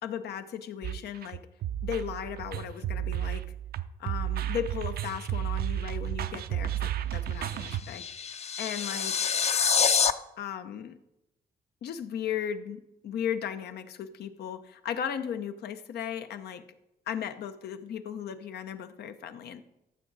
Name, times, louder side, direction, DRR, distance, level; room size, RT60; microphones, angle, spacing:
voice 1, 0.0-1.5 1.8-3.4 4.0-9.2 10.4-11.0 11.8-16.7 17.1-19.6, left 9 dB, 90° left, 10 dB, 0.7 m, -36 dB
sound 1, 0.8-7.8, right 11 dB, 70° right, 0.5 m, -32 dB
sound 2, 7.4-10.1, left 6 dB, 40° left, 0.5 m, -26 dB
14.0 x 6.1 x 4.0 m, 0.89 s
cardioid pair, 95°, 16 cm